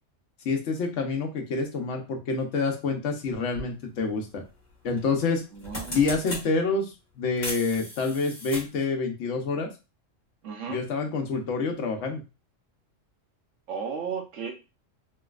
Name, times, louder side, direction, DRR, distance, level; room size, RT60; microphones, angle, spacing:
voice 1, 0.4-4.4 4.8-5.4 5.9-9.7 10.7-12.2, left 4 dB, 70° left, 3 dB, 1.1 m, -27 dB
sound 1, 3.5-3.7 5.0-5.2 5.5-6.4 7.4-8.8, equal, 35° left, 1.4 m, -36 dB
voice 2, 5.5-6.1 10.4-10.8 13.7-14.5, right 6 dB, 70° right, 2 dB, 1.1 m, -34 dB
3.2 x 3.0 x 2.3 m, 0.29 s
omnidirectional pair, 1.3 m